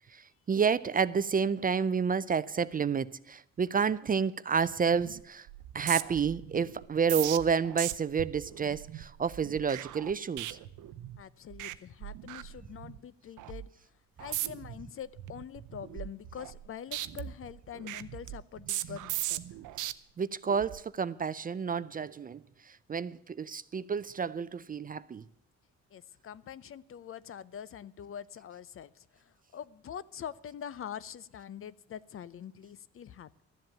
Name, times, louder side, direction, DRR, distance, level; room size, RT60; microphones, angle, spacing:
voice 1, 0.1-5.5 5.7-10.6 20.2-25.2, right 6 dB, 30° right, 0.5 m, -30 dB
sound 1, 4.9-5.2 5.5-11.2 11.5-11.8 12.0-13.0 13.4-13.7 14.2-14.7 15.2-16.7 16.9-19.9 20.5-20.8, right 14 dB, 80° right, 0.7 m, -38 dB
voice 2, 11.2-13.7 14.2-19.4 25.9-33.4, left 8 dB, 45° left, 0.6 m, -44 dB
13.0 x 7.7 x 8.9 m
cardioid pair, 90°, 30 cm